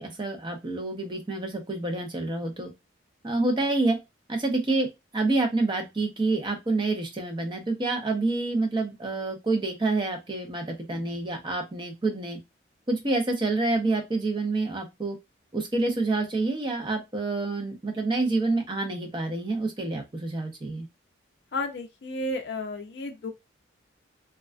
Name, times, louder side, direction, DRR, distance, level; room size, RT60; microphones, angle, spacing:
voice 1, 0.0-2.7 3.2-4.0 4.3-4.9 5.1-12.4 12.9-15.2 15.5-20.9, right 2 dB, 25° right, 0.5 m, -27 dB
voice 2, 21.5-23.3, left 2 dB, 60° left, 0.4 m, -32 dB
2.3 x 2.2 x 2.4 m
head